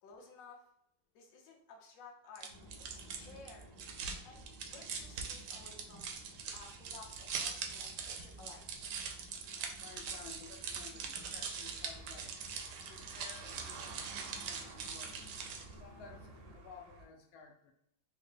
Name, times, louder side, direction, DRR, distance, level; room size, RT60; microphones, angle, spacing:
voice 1, 0.0-0.6 1.1-2.5 2.9-4.0 4.2-6.1 6.5-8.6, left 4 dB, 60° left, 0 dB, 1.0 m, -55 dB
sound 1, 2.4-15.8, right 6 dB, 75° right, 1.0 m, -43 dB
sound 2, 2.5-16.6, right 1 dB, 30° left, 0.4 m, -56 dB
voice 2, 9.6-12.4 12.9-15.3 15.7-17.7, left 5 dB, 80° left, 3 dB, 1.4 m, -55 dB
Car passing by / Engine, 10.3-17.1, right 4 dB, 90° right, 1.4 m, -54 dB
3.6 x 2.1 x 3.8 m, 0.76 s
omnidirectional pair, 2.2 m